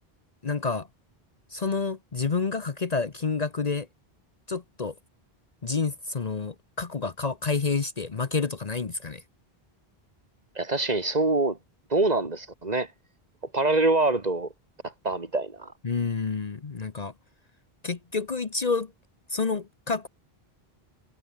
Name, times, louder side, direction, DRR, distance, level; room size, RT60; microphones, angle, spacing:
voice 1, 0.4-0.9 1.5-3.9 4.5-4.9 5.6-9.2 15.8-17.1 17.8-18.9 19.3-20.1, left 4 dB, 40° left, 1.0 m, -29 dB
voice 2, 10.6-11.6 11.9-12.9 13.5-14.5 14.8-15.7, right 2 dB, 40° right, 2.1 m, -25 dB
omnidirectional pair, 1.0 m